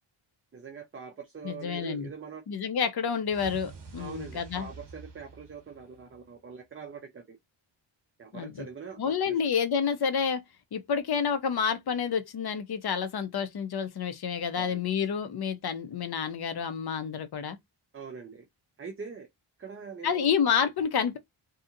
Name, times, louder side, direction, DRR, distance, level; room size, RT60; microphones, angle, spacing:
voice 1, 0.5-2.4 4.0-7.4 8.2-9.4 14.5-14.8 17.9-18.5 18.8-19.3 19.6-20.3, right 5 dB, 25° right, 0.5 m, -43 dB
voice 2, 1.4-2.1 2.5-4.7 8.3-8.7 9.0-10.4 10.7-17.6 20.0-21.2, left 7 dB, 50° left, 0.6 m, -29 dB
sound 1, 3.2-6.4, right 4 dB, 55° right, 0.8 m, -47 dB
2.8 x 2.6 x 2.4 m
wide cardioid pair, 135°, 49 cm